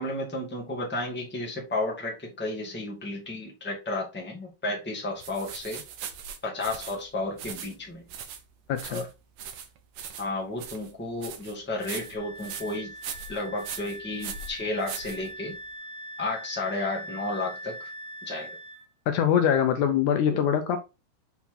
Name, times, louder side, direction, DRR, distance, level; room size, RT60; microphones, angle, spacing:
voice 1, 0.0-5.8 6.4-8.0 8.9-9.1 10.2-12.9 13.3-15.5 16.2-17.9 18.2-18.6 20.3-20.4, left 2 dB, 5° left, 1.6 m, -32 dB
sound 1, 5.2-15.7, right 7 dB, 70° right, 2.0 m, -41 dB
voice 2, 8.7-9.0 19.1-20.8, left 9 dB, 75° left, 2.1 m, -23 dB
Wind instrument woodwind instrument, 11.8-18.8, right 1 dB, 90° left, 2.6 m, -42 dB
7.1 x 4.4 x 3.8 m
omnidirectional pair, 3.8 m